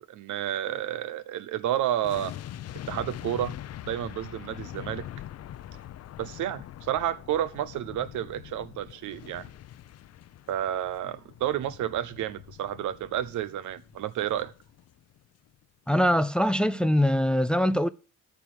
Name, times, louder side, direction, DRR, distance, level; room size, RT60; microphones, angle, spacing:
voice 1, 0.1-2.3 2.9-3.5 3.8-5.1 6.2-9.5 10.5-14.5, right 11 dB, 75° right, 0.9 m, -30 dB
Explosion at a construction site, 2.0-15.2 15.5-15.6, left 12 dB, 55° left, 0.6 m, -43 dB
voice 2, 15.9-17.9, equal, 5° left, 0.5 m, -23 dB
13.5 x 4.7 x 7.5 m
cardioid pair, 90°, 30 cm